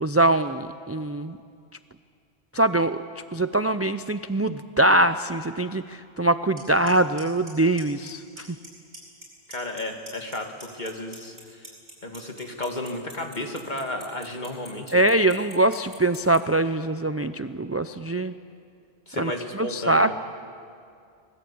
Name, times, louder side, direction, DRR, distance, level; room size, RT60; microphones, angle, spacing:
voice 1, 0.0-1.4 2.5-3.0 3.3-8.6 14.9-18.3 19.2-20.1, right 2 dB, 25° right, 10 dB, 0.3 m, -23 dB
Clock, 6.6-6.7 6.9-7.2 7.5-8.1 8.4-8.7 8.9-9.8 10.1-16.4, right 1 dB, 55° right, 7.6 m, -43 dB
voice 2, 9.5-11.7 12.0-15.0 19.1-20.1, left 1 dB, 45° left, 3 dB, 2.5 m, -33 dB
25.5 x 21.0 x 8.6 m, 2.3 s
omnidirectional pair, 1.1 m